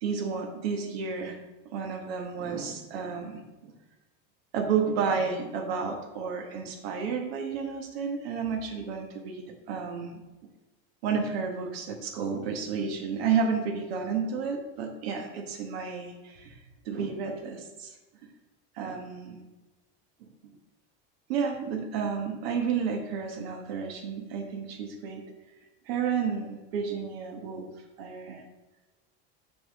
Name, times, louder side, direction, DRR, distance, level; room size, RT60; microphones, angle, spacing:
voice 1, 0.0-1.4 1.7-3.7 4.5-10.2 11.0-16.5 16.8-17.9 18.8-19.4 21.3-25.2 25.9-27.7 28.0-28.4, right 6 dB, 90° right, 3 dB, 1.5 m, -31 dB
6.0 x 5.9 x 4.7 m, 1.1 s
supercardioid pair, 135°, 30 cm